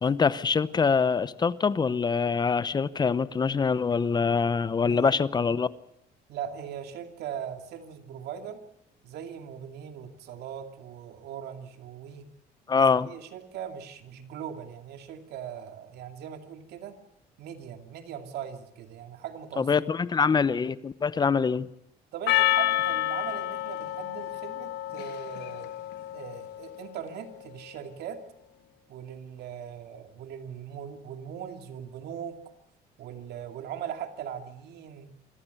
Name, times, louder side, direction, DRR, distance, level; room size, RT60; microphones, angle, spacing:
voice 1, 0.0-5.7 12.7-13.1 19.6-21.7, left 5 dB, 25° left, 17 dB, 0.8 m, -24 dB
voice 2, 6.3-8.6 9.0-12.3 12.7-17.0 17.4-19.8 20.2-20.3 22.1-25.7 26.1-28.2 28.9-32.4 33.0-35.1, right 9 dB, 75° right, 6 dB, 2.5 m, -40 dB
Percussion, 22.3-26.9, left 13 dB, 80° left, 1.2 m, -29 dB
25.5 x 14.5 x 8.1 m, 0.79 s
cardioid pair, 110°, 17 cm